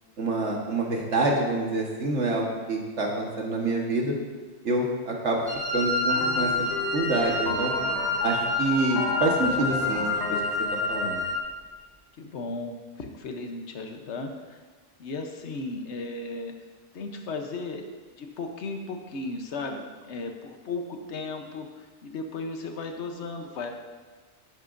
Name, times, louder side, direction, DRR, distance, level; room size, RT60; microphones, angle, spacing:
voice 1, 0.2-4.1 4.6-5.4 5.7-7.7 8.2-10.4 10.9-11.2, right 2 dB, 75° right, -1 dB, 1.7 m, -27 dB
Wind instrument woodwind instrument, 5.5-11.5, left 2 dB, 35° right, 1.3 m, -28 dB
sound 1, 6.1-11.4, left 4 dB, 45° left, 0.7 m, -34 dB
voice 2, 12.2-14.6 15.0-16.5 16.9-17.9 18.2-23.7, left 3 dB, 70° left, 4 dB, 1.2 m, -35 dB
11.0 x 11.0 x 2.6 m, 1.4 s
omnidirectional pair, 1.2 m